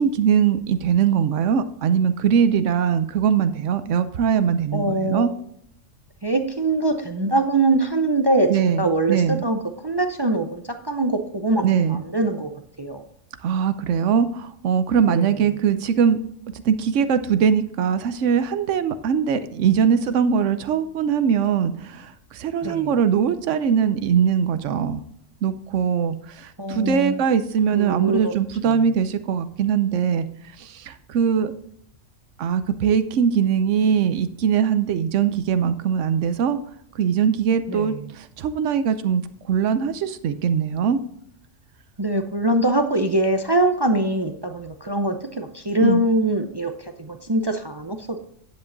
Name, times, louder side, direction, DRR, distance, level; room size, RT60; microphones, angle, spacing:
voice 1, 0.0-5.3 8.5-9.4 11.6-12.0 13.4-16.2 16.6-25.0 25.4-30.3 30.6-31.5 32.4-36.6 36.9-39.2 39.5-41.0 45.8-46.0, right 7 dB, 75° right, 11 dB, 1.1 m, -21 dB
voice 2, 4.7-5.3 6.2-12.5 12.8-13.0 15.1-15.3 22.6-22.9 26.6-27.2 27.7-28.3 28.6-28.8 37.7-37.9 42.0-48.2, right 2 dB, 30° right, 6 dB, 0.5 m, -23 dB
10.5 x 7.6 x 3.9 m, 0.68 s
omnidirectional pair, 1.3 m